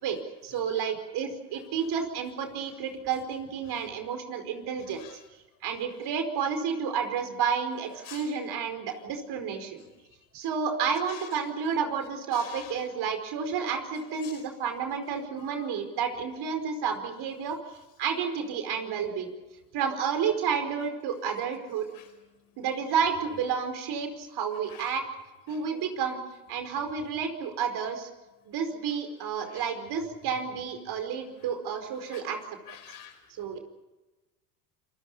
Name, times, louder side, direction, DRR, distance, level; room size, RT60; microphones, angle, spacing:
voice 1, 0.0-5.0 5.6-9.8 10.3-17.6 18.0-19.3 19.7-21.9 22.6-25.0 25.5-26.2 26.5-28.1 28.5-32.4 33.4-33.6, right 6 dB, 55° right, 7 dB, 4.8 m, -31 dB
voice 2, 32.7-33.2, left 10 dB, 45° left, 7 dB, 5.8 m, -46 dB
28.5 x 22.0 x 5.7 m, 1.1 s
hypercardioid pair, 85°, 47 cm